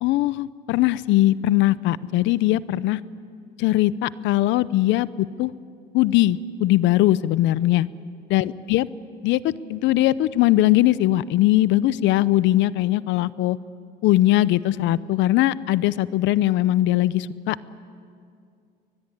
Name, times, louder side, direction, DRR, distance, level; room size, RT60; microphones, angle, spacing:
voice 1, 0.0-3.0 3.6-5.5 5.9-7.9 8.3-8.9 9.2-13.6 14.0-17.6, left 15 dB, 75° left, 18 dB, 0.7 m, -20 dB
22.0 x 21.5 x 9.8 m, 2.3 s
cardioid pair, 125°, 19 cm